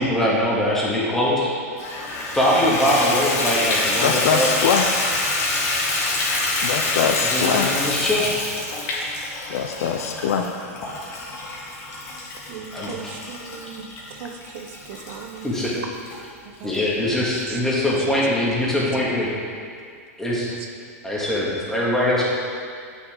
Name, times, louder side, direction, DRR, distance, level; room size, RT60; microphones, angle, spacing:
voice 1, 0.0-1.5 2.3-4.5 7.2-8.3 12.7-13.1 15.4-15.8 16.6-19.3 20.2-20.5 21.0-22.2, left 1 dB, 5° left, -6 dB, 2.0 m, -22 dB
Water tap faucet / Bathtub (filling or washing), 1.8-16.2 16.7-16.8 17.3-17.4 17.7-17.8, left 2 dB, 40° left, 1.8 m, -26 dB
voice 2, 4.0-4.9 6.6-7.7 9.5-10.5, left 7 dB, 70° left, 4 dB, 0.5 m, -22 dB
voice 3, 12.5-13.9 14.2-15.5 16.6-16.8, right 7 dB, 55° right, 4 dB, 0.9 m, -38 dB
8.1 x 6.1 x 3.8 m, 2.2 s
hypercardioid pair, 120°, 8 cm